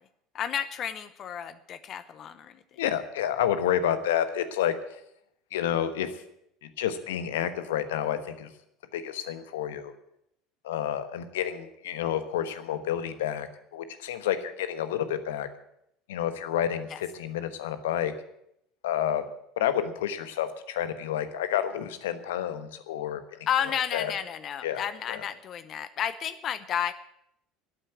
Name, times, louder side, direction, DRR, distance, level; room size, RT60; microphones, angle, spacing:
voice 1, 0.3-2.5 16.9-17.0 23.5-26.9, left 9 dB, 45° left, 13 dB, 0.8 m, -31 dB
voice 2, 2.8-4.7 5.5-6.1 6.6-8.5 8.9-9.9 10.6-13.5 13.7-15.5 16.1-18.1 18.8-19.2 19.6-23.4 23.6-24.1 24.6-25.2, left 10 dB, 70° left, 11 dB, 1.2 m, -29 dB
12.5 x 9.0 x 9.4 m, 0.77 s
figure-of-eight pair, 70°, 0 cm